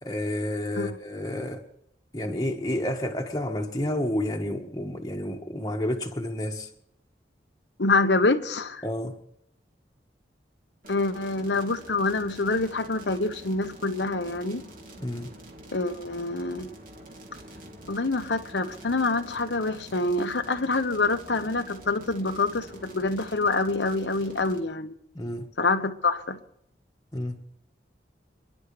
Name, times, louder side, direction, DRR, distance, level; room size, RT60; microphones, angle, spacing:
voice 1, 0.0-1.6 2.1-6.7 8.8-9.1 15.0-15.3 25.1-25.4 27.1-27.4, left 1 dB, 20° left, 1.6 m, -30 dB
voice 2, 7.8-8.8 10.9-14.7 15.7-16.7 17.9-24.9 25.6-26.4, left 3 dB, 85° left, 1.2 m, -26 dB
sound 1, 10.8-24.6, right 1 dB, 50° right, 3.0 m, -46 dB
28.5 x 11.0 x 3.3 m
head